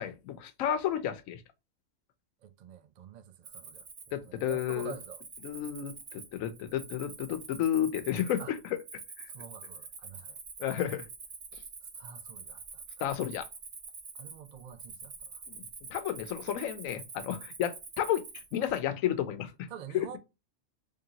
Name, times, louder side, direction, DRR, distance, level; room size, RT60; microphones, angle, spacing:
voice 1, 0.0-1.4 4.1-4.9 5.4-8.8 9.2-9.3 10.6-11.1 13.0-13.5 15.5-15.6 15.9-18.2 18.5-19.7 19.9-20.1, left 10 dB, 85° left, 1.0 m, -32 dB
voice 2, 2.4-5.2 8.4-8.5 9.3-10.4 12.0-12.8 14.1-15.4 19.7-20.2, right 8 dB, 75° right, 0.3 m, -47 dB
Cricket, 3.4-18.8, right 5 dB, 45° right, 0.9 m, -46 dB
3.7 x 3.3 x 2.8 m
omnidirectional pair, 1.4 m